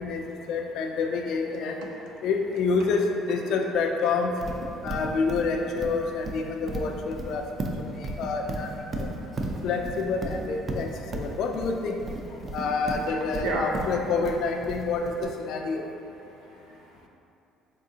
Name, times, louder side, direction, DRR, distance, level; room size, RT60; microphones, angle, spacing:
voice 1, 0.0-1.8 2.2-4.3 4.8-7.4 7.9-9.1 9.6-12.0 12.5-15.9, left 4 dB, 65° left, 3 dB, 0.3 m, -28 dB
voice 2, 1.5-2.3 4.7-4.8 9.8-10.0 13.4-13.7 16.4-17.1, right 2 dB, 85° right, -1 dB, 0.5 m, -36 dB
Livestock farm animals working animals, 4.4-15.2, right 2 dB, 35° right, 0.4 m, -34 dB
3.9 x 3.6 x 2.7 m, 2.8 s
cardioid pair, 105°, 0 cm